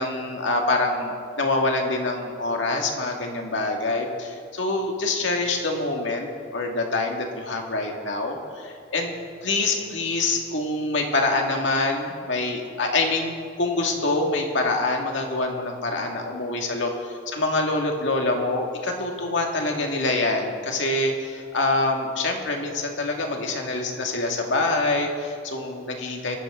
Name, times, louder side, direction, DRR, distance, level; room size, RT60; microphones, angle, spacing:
voice 1, 0.0-9.1 9.4-26.4, left 2 dB, 70° left, 1 dB, 2.1 m, -25 dB
21.5 x 13.0 x 3.8 m, 2.2 s
head